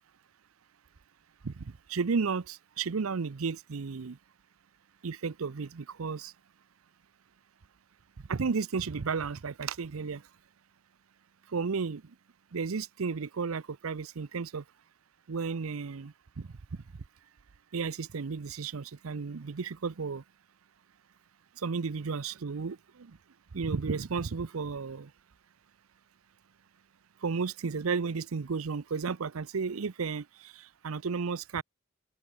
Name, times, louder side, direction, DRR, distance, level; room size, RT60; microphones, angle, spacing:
voice 1, 1.4-4.2 5.0-6.3 8.3-10.2 11.5-12.0 12.5-14.6 15.3-16.5 17.7-20.2 21.6-23.2 23.5-25.1 27.2-31.6, right 5 dB, 85° right, 0.6 m, -33 dB
open air
head